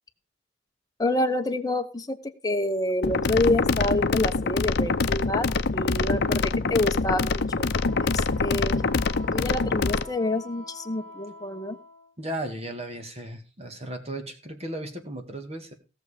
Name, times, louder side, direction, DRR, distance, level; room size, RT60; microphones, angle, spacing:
voice 1, 1.0-7.7 8.0-8.8 9.3-11.8, left 2 dB, 20° left, 6 dB, 1.0 m, -28 dB
sound 1, 3.0-10.0, left 3 dB, 55° left, 0.7 m, -25 dB
Wind instrument woodwind instrument, 7.7-12.1, left 1 dB, 70° right, 1.6 m, -46 dB
voice 2, 12.2-15.7, right 1 dB, 30° right, 6 dB, 2.0 m, -35 dB
17.0 x 6.6 x 5.1 m, 0.34 s
head